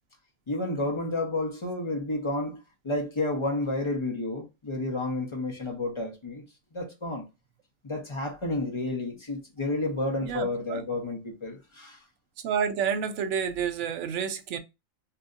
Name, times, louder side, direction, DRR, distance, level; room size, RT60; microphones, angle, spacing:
voice 1, 0.5-2.6 2.8-6.4 6.7-7.2 7.8-12.0, left 2 dB, 30° left, 0.5 m, -31 dB
voice 2, 10.2-10.8 12.4-14.6, right 7 dB, 70° right, 0.8 m, -29 dB
2.8 x 2.6 x 2.4 m
omnidirectional pair, 1.4 m